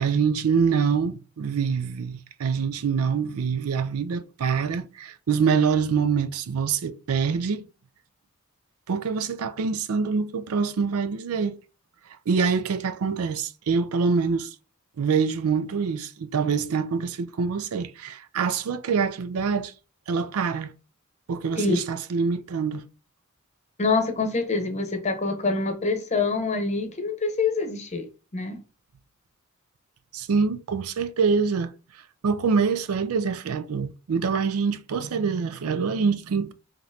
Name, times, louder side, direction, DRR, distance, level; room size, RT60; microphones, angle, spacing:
voice 1, 0.0-7.6 8.9-11.6 12.3-14.5 15.0-19.7 20.1-20.7 21.3-22.8 30.1-31.7 32.2-36.5, right 5 dB, 80° right, 0.4 m, -25 dB
voice 2, 23.8-28.6, left 3 dB, 30° left, 0.8 m, -26 dB
5.0 x 2.9 x 2.7 m
head